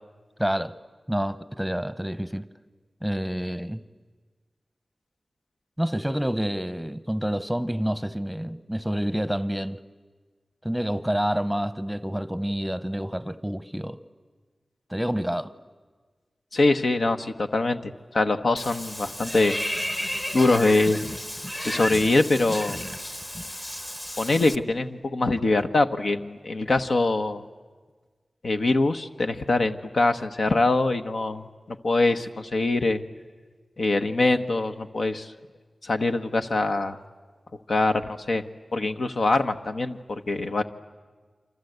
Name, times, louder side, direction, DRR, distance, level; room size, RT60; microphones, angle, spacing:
voice 1, 0.4-0.8 1.1-2.5 3.0-3.8 5.8-9.8 10.6-14.0 14.9-15.5, equal, ahead, 0.9 m, -28 dB
voice 2, 16.5-19.6 20.3-21.0 21.6-22.8 24.2-27.4 28.4-31.5 31.8-33.0 33.8-35.3 35.8-37.0 37.7-38.4 38.7-40.6, left 2 dB, 75° left, 1.1 m, -23 dB
Water / Bathtub (filling or washing), 18.6-24.6, equal, 20° left, 1.1 m, -33 dB
29.0 x 25.5 x 8.1 m
cardioid pair, 55°, 0 cm